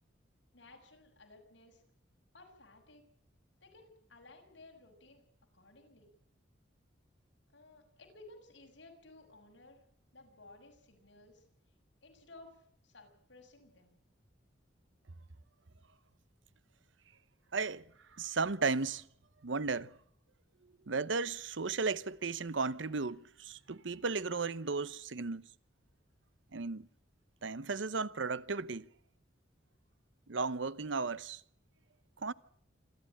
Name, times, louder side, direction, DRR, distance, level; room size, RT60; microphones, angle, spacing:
voice 1, 0.5-1.8 2.3-3.0 3.6-5.2 5.5-6.1 7.5-9.8 10.1-11.4 12.0-14.0, left 2 dB, 65° left, 6.6 m, -57 dB
voice 2, 17.5-17.9 18.2-19.1 19.4-20.0 20.9-25.5 26.5-26.9 27.4-28.9 30.3-31.4 32.2-32.3, right 4 dB, 75° right, 0.8 m, -35 dB
27.0 x 12.5 x 8.7 m
head